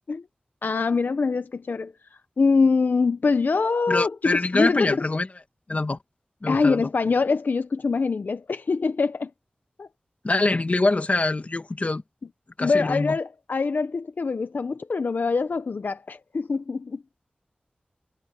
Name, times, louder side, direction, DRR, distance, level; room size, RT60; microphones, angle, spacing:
voice 1, 0.6-1.9 2.4-5.0 6.5-9.3 9.8-9.9 12.6-17.0, left 4 dB, 75° left, 0.7 m, -24 dB
voice 2, 3.9-5.3 5.7-6.0 6.4-6.9 10.2-12.0 12.6-13.2, left 2 dB, 45° left, 2.0 m, -24 dB
wide cardioid pair, 85°, 3 cm